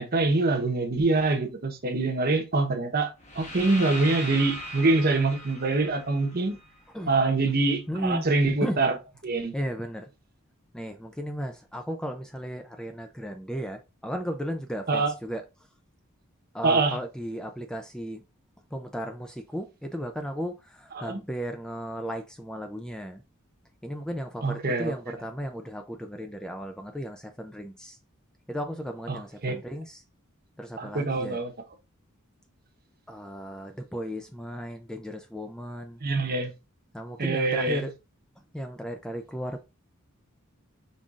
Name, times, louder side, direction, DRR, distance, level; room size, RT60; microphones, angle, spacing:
voice 1, 0.0-6.6 7.1-9.0 9.2-9.5 14.9-15.1 16.6-17.0 20.9-21.2 24.4-25.1 29.1-29.7 30.8-31.5 36.0-36.5 37.2-37.9, right 3 dB, 45° right, 1.0 m, -25 dB
sound 1, 3.2-7.2, left 1 dB, 30° left, 1.1 m, -39 dB
voice 2, 7.9-8.3 8.6-8.8 9.5-10.1 10.7-15.4 16.5-18.2 18.7-23.2 23.8-28.0 28.5-30.0 30.6-31.4 33.1-36.0 36.9-37.9 38.5-39.6, equal, 5° left, 0.4 m, -35 dB
5.5 x 3.7 x 2.5 m
head